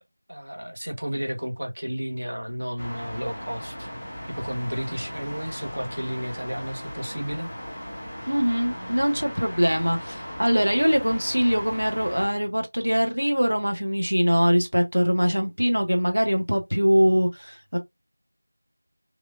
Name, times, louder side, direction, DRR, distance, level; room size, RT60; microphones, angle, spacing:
voice 1, 0.3-3.9 4.3-7.5, equal, 65° right, 1.0 m, -32 dB
sound 1, 2.8-12.3, equal, ahead, 0.6 m, -37 dB
voice 2, 8.3-17.8, equal, 90° right, 0.9 m, -22 dB
3.2 x 2.4 x 2.4 m
figure-of-eight pair, 175°, 0 cm